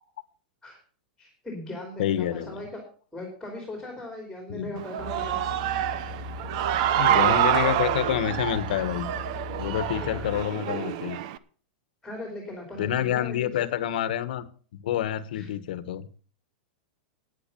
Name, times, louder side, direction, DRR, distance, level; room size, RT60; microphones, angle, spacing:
voice 1, 1.2-2.8 3.1-5.4 10.0-10.3 12.0-13.7 15.3-15.5, left 1 dB, ahead, 1 dB, 3.3 m, -39 dB
voice 2, 2.0-2.6 4.5-4.7 7.0-9.1 9.6-11.2 12.8-14.4 14.8-16.2, left 11 dB, 65° left, 13 dB, 1.3 m, -28 dB
Human voice / Cheering, 4.8-11.4, right 11 dB, 45° right, 0.8 m, -27 dB
sound 1, 5.0-10.4, left 3 dB, 20° right, 2.9 m, -39 dB
10.5 x 9.7 x 6.9 m, 0.42 s
supercardioid pair, 165°, 5 cm